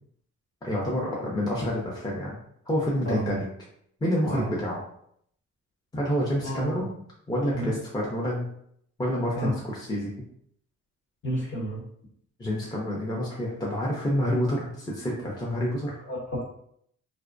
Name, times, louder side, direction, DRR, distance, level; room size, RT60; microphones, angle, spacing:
voice 1, 0.6-2.4 2.7-3.5 4.0-4.8 5.9-7.0 7.3-8.5 9.0-10.1 12.4-16.0, equal, 15° left, -5 dB, 0.6 m, -28 dB
voice 2, 3.1-3.4 4.3-4.5 6.4-6.8 7.5-7.7 9.4-9.5 11.2-11.8 16.1-16.5, right 1 dB, 40° left, -3 dB, 1.0 m, -30 dB
2.5 x 2.0 x 2.5 m, 0.68 s
cardioid pair, 90°, 30 cm